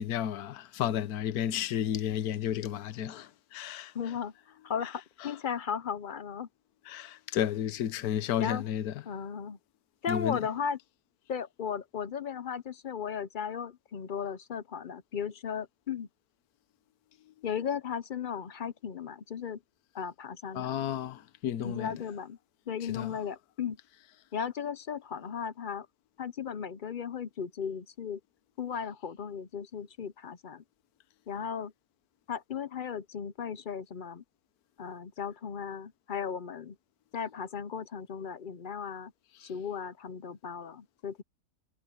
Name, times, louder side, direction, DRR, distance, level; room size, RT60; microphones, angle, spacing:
voice 1, 0.0-3.9 5.2-5.3 6.9-8.9 10.1-10.4 20.5-21.9 22.9-23.2 39.4-39.5, left 10 dB, 75° left, 1.3 m, -32 dB
voice 2, 3.9-6.5 8.4-8.6 9.1-9.6 10.0-10.8 11.3-16.1 17.4-19.6 19.9-20.7 21.6-22.4 22.7-23.8 24.3-25.9 26.2-28.2 28.6-30.6 31.3-31.7 32.3-34.2 34.8-36.8 37.1-39.1 39.4-41.2, left 7 dB, 55° left, 0.5 m, -36 dB
omnidirectional pair, 1.6 m